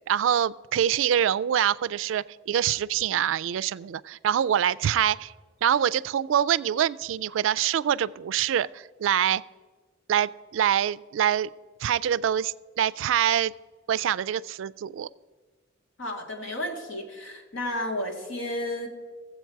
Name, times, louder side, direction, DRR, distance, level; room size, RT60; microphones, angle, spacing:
voice 1, 0.1-5.3 5.6-9.4 10.1-11.5 11.8-13.5 13.9-15.1, right 9 dB, 90° right, 21 dB, 0.3 m, -25 dB
voice 2, 16.0-18.9, left 1 dB, 85° left, 3 dB, 1.8 m, -32 dB
15.5 x 7.8 x 4.6 m, 1.4 s
head